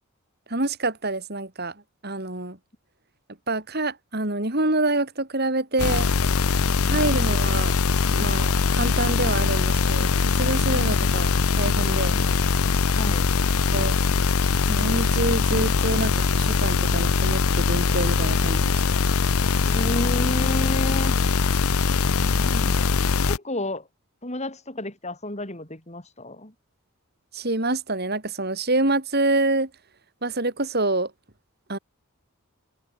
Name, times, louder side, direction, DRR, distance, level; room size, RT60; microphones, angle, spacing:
voice 1, 0.5-1.7 2.0-2.6 3.5-6.1 6.8-7.7 8.1-12.2 13.7-13.9 14.7-18.8 27.3-29.7 30.2-31.1 31.7-31.8, right 2 dB, 45° right, 4.3 m, -26 dB
sound 1, 5.8-23.4, left 4 dB, 80° left, 0.8 m, -22 dB
voice 2, 12.1-12.4 12.9-13.3 19.7-21.2 22.2-22.9 23.3-23.9 24.2-26.5, left 1 dB, 30° left, 4.6 m, -32 dB
head